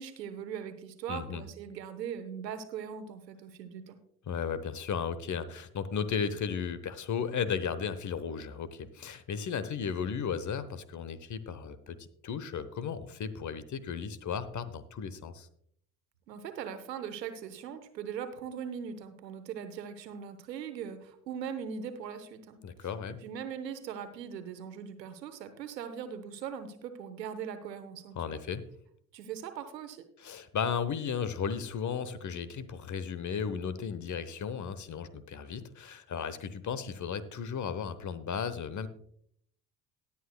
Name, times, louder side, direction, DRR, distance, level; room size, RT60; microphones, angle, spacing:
voice 1, 0.0-4.0 16.3-22.6 23.2-28.4 29.1-30.1, right 8 dB, 85° right, 11 dB, 1.0 m, -40 dB
voice 2, 1.1-1.4 4.3-15.5 22.6-23.2 28.2-28.6 30.2-38.9, left 6 dB, 35° left, 15 dB, 1.0 m, -35 dB
18.5 x 8.4 x 2.2 m, 0.67 s
hypercardioid pair, 55°, 49 cm